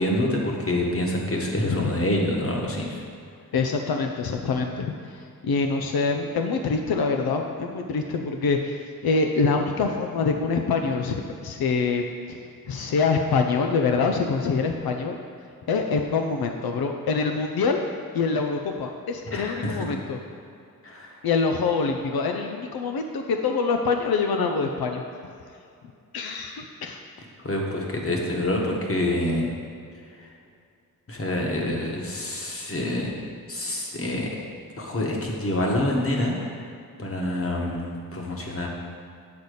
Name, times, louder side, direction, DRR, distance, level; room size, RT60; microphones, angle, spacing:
voice 1, 0.0-3.0 19.3-19.8 20.8-21.2 27.4-29.5 30.2-30.3 31.1-33.1 33.5-34.3 34.8-36.3 37.0-38.7, left 1 dB, 40° left, -1 dB, 1.3 m, -26 dB
voice 2, 3.5-12.4 12.7-15.2 15.7-17.8 18.1-20.2 21.2-25.0 26.1-27.0, left 4 dB, 90° left, 3 dB, 0.6 m, -25 dB
8.5 x 4.1 x 6.5 m, 2.5 s
wide cardioid pair, 105°, 36 cm